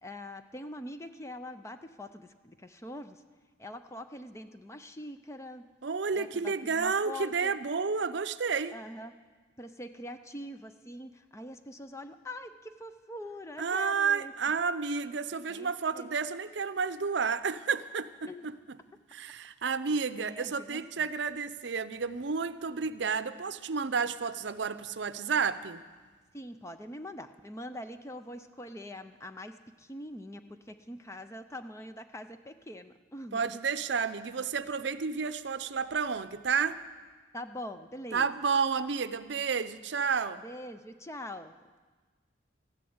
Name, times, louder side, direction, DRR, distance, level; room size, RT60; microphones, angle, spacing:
voice 1, 0.0-3.2 3.6-5.6 6.1-7.5 8.7-9.1 9.6-14.3 15.5-16.1 18.2-18.5 20.2-21.1 26.3-33.6 37.3-38.3 40.4-41.5, left 1 dB, 15° left, 9 dB, 0.5 m, -43 dB
voice 2, 5.8-8.7 13.6-18.8 19.1-25.8 33.3-36.8 38.1-40.4, right 5 dB, 70° right, 13 dB, 0.6 m, -31 dB
14.0 x 11.0 x 7.9 m, 1.4 s
head